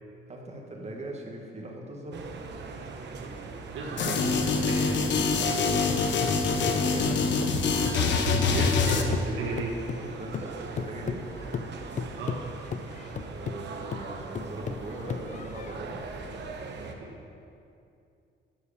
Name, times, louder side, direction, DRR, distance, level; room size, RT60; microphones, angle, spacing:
voice 1, 0.3-2.3 6.2-7.2 10.0-11.2 13.2-16.0, right 1 dB, 35° right, 0 dB, 1.6 m, -40 dB
sound 1, 2.1-17.0, right 4 dB, 60° right, 1.0 m, -40 dB
voice 2, 3.2-5.0 8.2-9.8 12.2-12.4 16.8-17.1, right 3 dB, 85° right, 0 dB, 1.3 m, -34 dB
sound 2, 4.0-9.0, left 4 dB, 65° left, 1.0 m, -25 dB
sound 3, 5.9-8.9 9.1-15.8, left 6 dB, 40° left, 0.5 m, -37 dB
11.5 x 4.8 x 7.1 m, 2.6 s
cardioid pair, 90°, 20 cm